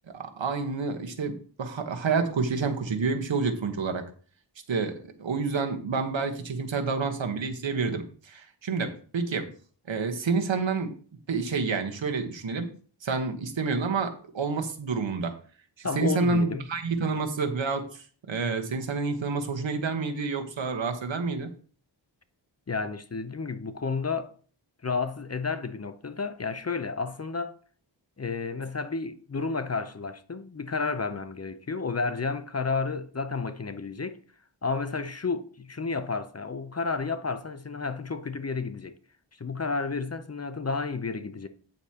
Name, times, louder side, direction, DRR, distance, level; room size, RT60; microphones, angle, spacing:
voice 1, 0.1-4.0 4.7-9.5 9.9-10.9 11.3-12.7 13.0-15.4 15.8-18.0 18.3-21.5, right 4 dB, 70° right, 1.3 m, -29 dB
voice 2, 15.8-16.7 22.7-24.3 24.8-27.6 28.2-34.2 34.6-39.0 39.4-41.5, left 4 dB, 35° left, 0.7 m, -31 dB
8.9 x 8.0 x 2.9 m
wide cardioid pair, 85°, 47 cm